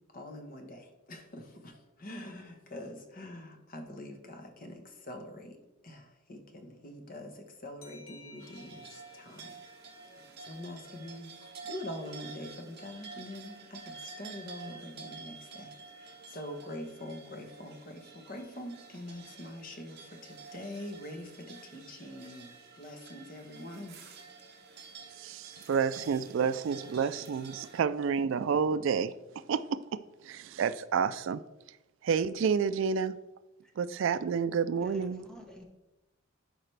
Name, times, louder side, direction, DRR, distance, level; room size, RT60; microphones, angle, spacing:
voice 1, 0.1-5.6 5.8-9.6 10.4-15.7 16.0-24.0, left 1 dB, 40° left, 1.1 m, -44 dB
sound 1, 7.8-11.1, left 3 dB, 75° left, 1.0 m, -57 dB
sound 2, 8.4-27.8, right 4 dB, 50° right, 1.1 m, -50 dB
voice 2, 25.1-29.1 29.5-31.4 31.7-31.8 32.0-33.2 33.8-35.2, right 6 dB, 65° right, 0.3 m, -30 dB
voice 3, 34.8-35.6, left 1 dB, 5° left, 1.2 m, -48 dB
12.0 x 4.9 x 3.3 m
head